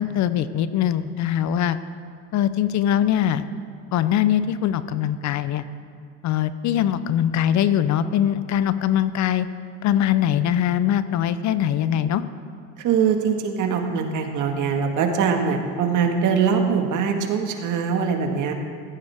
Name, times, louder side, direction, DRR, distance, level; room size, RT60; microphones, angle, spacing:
voice 1, 0.0-1.8 2.3-3.4 3.9-5.7 6.2-9.5 9.8-12.2, left 10 dB, 50° left, 13 dB, 0.7 m, -22 dB
voice 2, 12.8-18.5, right 6 dB, 55° right, 4 dB, 1.8 m, -22 dB
15.5 x 14.5 x 3.6 m, 2.3 s
supercardioid pair, 90°, 36 cm